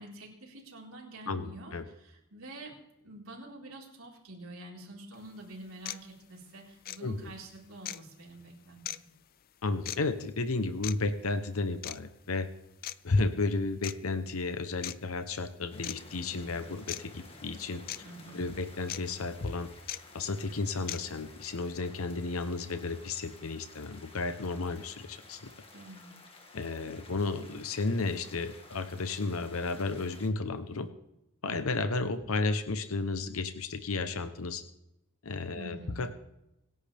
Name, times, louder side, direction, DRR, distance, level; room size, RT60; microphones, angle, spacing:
voice 1, 0.0-2.8 3.0-8.8 18.0-18.5 25.7-26.1 35.5-36.1, right 2 dB, 90° right, -2 dB, 4.4 m, -47 dB
voice 2, 1.3-1.8 7.0-7.3 9.6-12.5 13.0-17.8 18.3-19.7 20.1-25.5 26.5-30.9 31.4-34.6 35.2-36.3, left 3 dB, 90° left, 10 dB, 0.9 m, -33 dB
sound 1, 5.1-5.2 5.8-6.0 6.8-7.0 7.8-8.0 8.8-9.0 9.8-10.0 10.8-10.9 11.8-12.0 12.8-12.9 13.8-13.9 14.8-15.0 15.8-16.0 16.9-17.0 17.9-18.0 18.9-19.0 19.9-20.0 20.9-21.0, left 12 dB, 45° left, 0.5 m, -37 dB
sound 2, 15.7-30.3, left 2 dB, 25° left, 1.9 m, -53 dB
25.5 x 11.0 x 3.5 m, 0.89 s
head